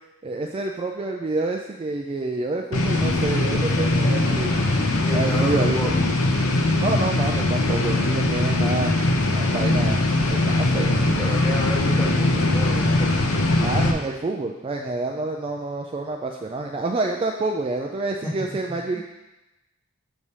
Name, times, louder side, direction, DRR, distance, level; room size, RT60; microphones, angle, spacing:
voice 1, 0.2-4.5 5.1-5.9 6.8-11.3 13.6-19.0, right 2 dB, 25° right, 2 dB, 0.3 m, -28 dB
sound 1, 2.7-13.9, left 2 dB, 90° left, 0.8 m, -21 dB
voice 2, 3.9-4.2 5.0-6.0 10.7-13.4 18.2-18.3 18.7-19.0, equal, 10° left, -5 dB, 1.6 m, -32 dB
7.2 x 3.2 x 5.4 m, 0.99 s
head